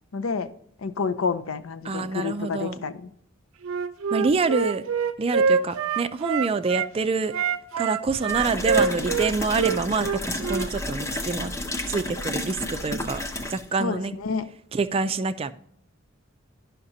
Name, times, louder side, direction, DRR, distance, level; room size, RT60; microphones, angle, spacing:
voice 1, 0.1-0.5 0.8-3.1 13.8-14.4, left 5 dB, 75° left, 0.6 m, -29 dB
voice 2, 1.8-2.8 4.1-4.8 5.2-7.3 7.8-11.5 11.9-14.1 14.7-15.5, right 4 dB, 30° right, 0.3 m, -26 dB
Wind instrument woodwind instrument, 3.6-6.9 7.3-10.7, right 6 dB, 80° right, 0.5 m, -25 dB
sound 1, 8.3-13.7, left 1 dB, 15° left, 0.7 m, -31 dB
11.0 x 5.8 x 2.7 m
head